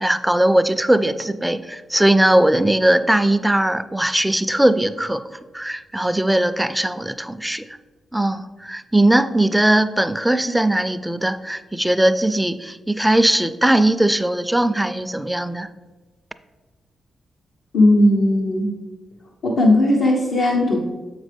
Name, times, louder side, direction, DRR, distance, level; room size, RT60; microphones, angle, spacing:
voice 1, 0.0-5.2 5.5-7.7 8.1-15.7, right 1 dB, 10° right, 12 dB, 0.4 m, -19 dB
voice 2, 17.7-18.7 19.4-20.8, left 1 dB, 85° left, -5 dB, 0.9 m, -16 dB
7.3 x 5.3 x 3.3 m, 1.2 s
supercardioid pair, 45°, 0 cm